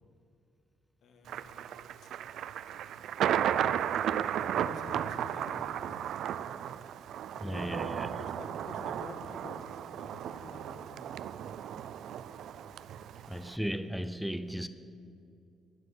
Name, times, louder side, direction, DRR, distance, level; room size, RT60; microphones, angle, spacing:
voice 1, 1.0-2.1 4.4-6.0 7.4-11.0, left 3 dB, 70° left, 5 dB, 1.6 m, -49 dB
Thunder, 1.3-13.6, right 10 dB, 75° right, 0.4 m, -34 dB
voice 2, 7.4-8.2 13.3-14.7, equal, ahead, 10 dB, 0.6 m, -36 dB
12.0 x 9.0 x 7.0 m, 2.6 s
cardioid pair, 90°, 0 cm